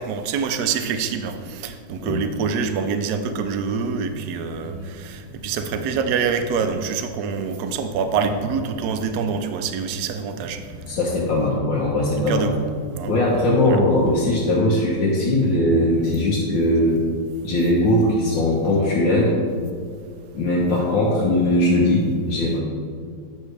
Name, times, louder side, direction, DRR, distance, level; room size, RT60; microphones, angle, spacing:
voice 1, 0.0-10.6 12.3-12.7 12.9-13.1 13.6-13.8, right 6 dB, 70° right, 8 dB, 1.1 m, -25 dB
sound 1, 4.0-4.3 4.6-6.8 7.2-9.4 9.7-11.9 12.3-14.2, equal, 35° left, 1.0 m, -39 dB
voice 2, 10.9-12.5 13.1-17.0 17.4-19.4 20.3-22.6, left 1 dB, 80° left, -6 dB, 1.8 m, -20 dB
9.3 x 6.5 x 3.3 m, 2.1 s
omnidirectional pair, 2.0 m